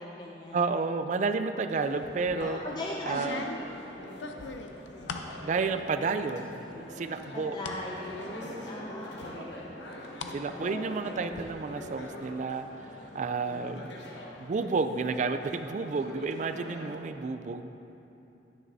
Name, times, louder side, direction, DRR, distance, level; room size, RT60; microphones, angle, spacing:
voice 1, 0.0-0.6 2.4-3.4 7.3-9.8 10.3-10.6 13.5-13.8, left 1 dB, 25° left, -2 dB, 0.5 m, -39 dB
voice 2, 0.5-2.6 3.1-3.4 5.4-6.6 7.0-7.6 10.3-12.7 13.1-13.9 14.4-17.7, right 4 dB, 45° right, 9 dB, 0.3 m, -31 dB
sound 1, 1.7-17.0, left 1 dB, 75° left, 1.2 m, -44 dB
sound 2, 2.0-2.5 3.1-5.4 5.8-6.4 6.7-7.8 8.3-8.4 9.2-10.4 10.7-11.4, left 4 dB, 90° left, 0.5 m, -41 dB
10.5 x 9.1 x 2.7 m, 2.9 s
head